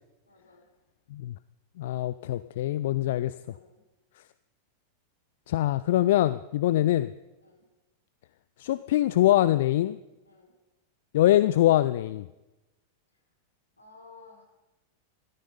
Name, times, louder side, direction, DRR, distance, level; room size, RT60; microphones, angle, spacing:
voice 1, 0.3-0.6 3.4-3.8 7.4-7.6 10.2-10.5 13.8-14.4, left 3 dB, 80° left, -1 dB, 4.0 m, -54 dB
voice 2, 1.8-3.3 5.5-7.1 8.6-10.0 11.1-12.3, left 14 dB, 55° left, 15 dB, 0.4 m, -23 dB
14.0 x 13.0 x 5.5 m, 1.0 s
figure-of-eight pair, 90°, 0 cm